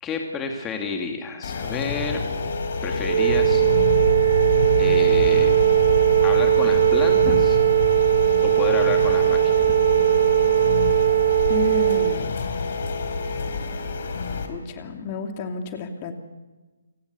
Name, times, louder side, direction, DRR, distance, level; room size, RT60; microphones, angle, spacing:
voice 1, 0.0-2.2 2.8-3.6 4.8-5.5 6.2-7.6 8.4-9.7, left 5 dB, 15° left, 3 dB, 2.3 m, -30 dB
sound 1, 1.4-14.5, left 4 dB, 55° left, 3.8 m, -28 dB
Wind instrument woodwind instrument, 3.0-12.2, right 12 dB, 55° right, 1.2 m, -19 dB
sound 2, 3.3-14.8, left 2 dB, 70° left, 7.9 m, -31 dB
voice 2, 11.5-12.5 14.5-16.1, left 5 dB, 30° left, 5 dB, 2.6 m, -31 dB
29.0 x 19.0 x 6.8 m, 1.2 s
figure-of-eight pair, 145°, 0 cm